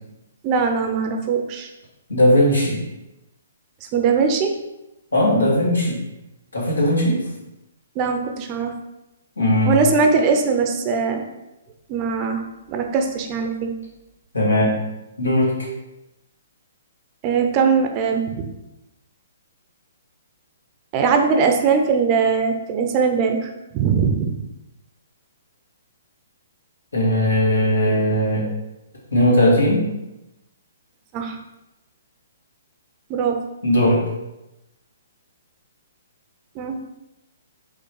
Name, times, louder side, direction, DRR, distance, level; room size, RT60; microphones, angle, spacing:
voice 1, 0.4-1.7 3.9-4.5 8.0-8.7 9.7-11.2 11.9-12.4 12.7-13.8 17.2-18.5 20.9-24.4 31.1-31.4 33.1-33.4 36.6-36.8, right 5 dB, 30° right, 5 dB, 0.7 m, -20 dB
voice 2, 2.1-2.9 5.1-6.0 6.5-7.2 9.4-9.8 14.3-14.8 15.2-15.7 26.9-28.4 29.1-29.9 33.6-34.0, left 1 dB, 75° left, -3 dB, 2.2 m, -18 dB
5.2 x 4.0 x 4.6 m, 0.95 s
figure-of-eight pair, 125°, 0 cm